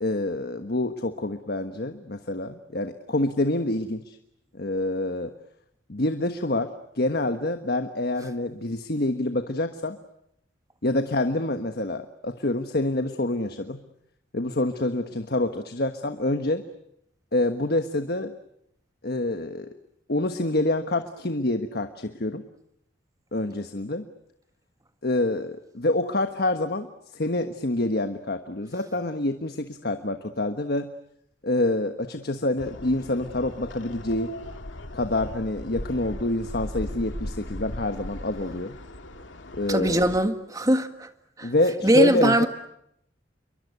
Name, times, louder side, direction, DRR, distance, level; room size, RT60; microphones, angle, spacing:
voice 1, 0.0-4.2 4.5-5.3 5.9-6.7 7.0-10.0 10.8-13.8 14.3-16.6 17.3-18.3 19.0-19.7 20.1-22.4 23.3-24.1 25.0-30.9 31.4-34.3 34.9-38.7 39.6-40.0 41.4-42.5, left 2 dB, 55° left, 8 dB, 1.3 m, -27 dB
sound 1, 32.6-40.2, left 1 dB, 85° left, 2.3 m, -38 dB
voice 2, 39.7-41.1 41.4-41.5 41.8-42.5, right 1 dB, 20° right, 8 dB, 1.8 m, -21 dB
29.0 x 23.5 x 8.2 m, 0.77 s
head